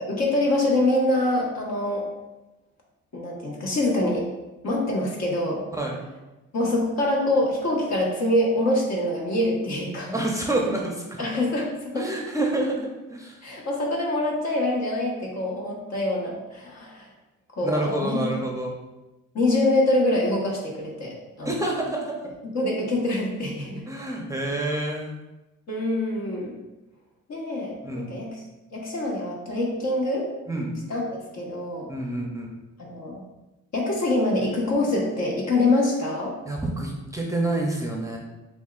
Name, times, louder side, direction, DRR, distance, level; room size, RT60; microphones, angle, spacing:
voice 1, 0.1-2.1 3.1-4.3 4.6-5.6 6.5-10.2 11.2-12.0 13.4-17.1 17.5-18.2 19.3-21.6 22.4-23.8 25.7-26.6 27.3-28.3 28.7-30.3 30.9-31.9 32.8-33.2 33.7-36.3, left 1 dB, 60° left, -3 dB, 1.3 m, -25 dB
voice 2, 5.7-6.0 10.1-11.2 11.9-13.4 17.6-18.7 21.4-22.2 23.9-25.1 27.8-28.1 30.5-30.7 31.9-32.5 36.5-38.2, right 1 dB, 10° right, -1 dB, 0.6 m, -28 dB
6.9 x 2.4 x 2.4 m, 1.0 s
cardioid pair, 90°, 30 cm